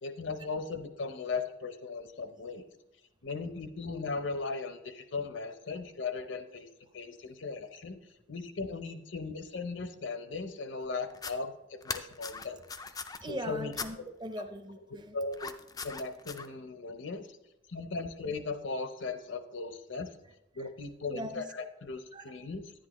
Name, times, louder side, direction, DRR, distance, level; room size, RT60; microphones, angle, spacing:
voice 1, 0.0-2.7 3.2-6.7 6.9-8.0 8.3-12.6 13.3-14.0 15.1-15.5 15.8-17.3 17.7-20.1 20.6-22.7, left 4 dB, 65° left, 9 dB, 0.7 m, -37 dB
sound 1, 11.1-11.3 11.8-13.2 13.7-13.9 15.3-16.5, left 5 dB, 20° left, 0.4 m, -39 dB
voice 2, 13.2-15.1 20.6-20.7 21.0-21.5 22.1-22.3, right 1 dB, 20° right, 7 dB, 0.7 m, -40 dB
10.0 x 10.0 x 3.0 m, 0.92 s
head